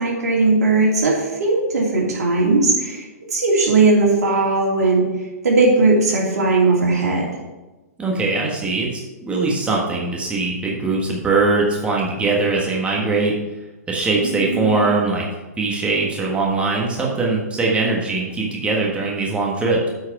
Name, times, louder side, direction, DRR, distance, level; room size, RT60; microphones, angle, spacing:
voice 1, 0.0-5.1 5.4-7.3 14.2-14.9, right 3 dB, 75° right, -2 dB, 2.7 m, -18 dB
voice 2, 8.0-9.0 9.2-13.3 13.9-15.2 15.6-19.9, right 3 dB, 15° right, -2 dB, 1.4 m, -21 dB
8.4 x 4.8 x 6.0 m, 1.1 s
hypercardioid pair, 125°, 9 cm